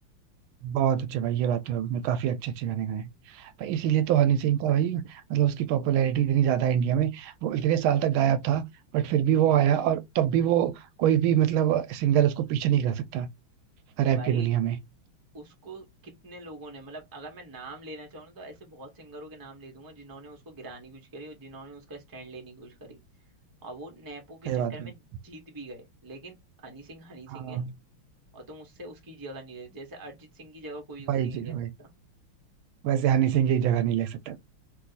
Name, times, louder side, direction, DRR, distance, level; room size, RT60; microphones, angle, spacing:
voice 1, 0.6-3.1 3.4-8.6 8.9-13.3 14.0-14.8 24.5-24.7 27.3-27.7 31.1-31.7 32.8-34.4, right 10 dB, 80° right, 1.4 m, -25 dB
voice 2, 14.1-14.5 15.3-23.0 23.6-26.4 26.6-27.6 28.3-31.9, right 2 dB, 15° right, 0.7 m, -44 dB
3.2 x 2.7 x 3.9 m
omnidirectional pair, 2.3 m